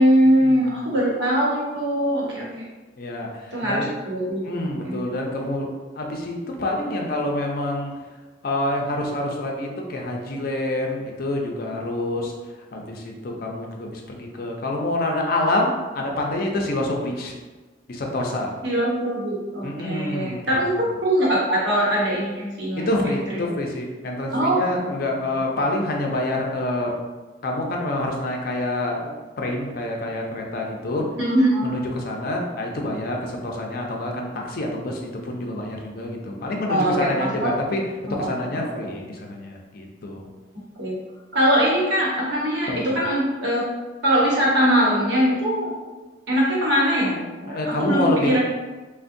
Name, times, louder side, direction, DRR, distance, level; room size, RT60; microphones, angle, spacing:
voice 1, 0.0-2.6 3.5-5.0 18.6-20.7 21.0-23.2 24.3-24.9 31.2-31.8 36.7-37.5 38.1-38.4 38.7-38.8 40.8-40.9 41.3-43.6 44.0-45.7 46.3-48.4, equal, 70° right, -5 dB, 1.0 m, -22 dB
voice 2, 3.0-3.9 4.4-5.7 6.0-7.9 8.4-12.3 12.7-17.4 17.9-18.5 19.6-20.6 22.8-26.9 27.4-29.1 29.4-31.0 31.6-37.8 38.1-40.3 42.7-43.0 47.5-48.4, left 1 dB, 55° left, 1 dB, 0.5 m, -27 dB
3.4 x 2.1 x 2.6 m, 1.2 s
head